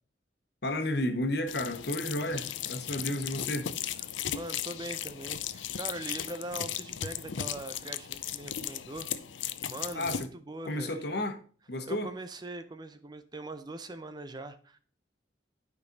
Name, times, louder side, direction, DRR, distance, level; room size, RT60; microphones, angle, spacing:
voice 1, 0.6-3.7 9.9-10.3 10.6-11.4 11.7-12.1, left 1 dB, 60° left, 1.2 m, -32 dB
sound 1, 1.5-10.3, left 10 dB, 85° left, 0.6 m, -36 dB
voice 2, 4.3-9.1 9.4-11.0 11.9-14.8, right 2 dB, 25° right, 0.6 m, -41 dB
12.0 x 5.3 x 4.0 m
head